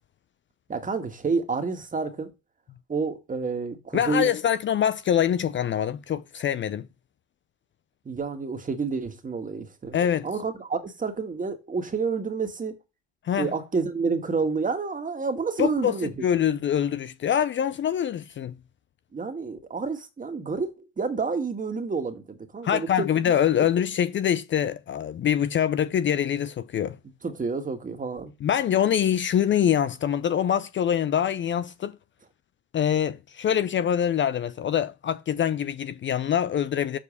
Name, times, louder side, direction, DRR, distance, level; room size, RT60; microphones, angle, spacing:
voice 1, 0.7-2.3 2.9-4.3 8.1-10.0 10.2-12.8 13.4-16.2 19.1-23.1 27.2-28.3, right 4 dB, 25° right, 2.0 m, -29 dB
voice 2, 3.9-6.9 9.9-10.3 13.2-13.5 15.6-15.9 16.2-18.5 22.6-27.0 28.4-32.0 32.7-37.0, left 9 dB, 40° left, 0.6 m, -24 dB
7.4 x 4.6 x 6.6 m
supercardioid pair, 75°, 31 cm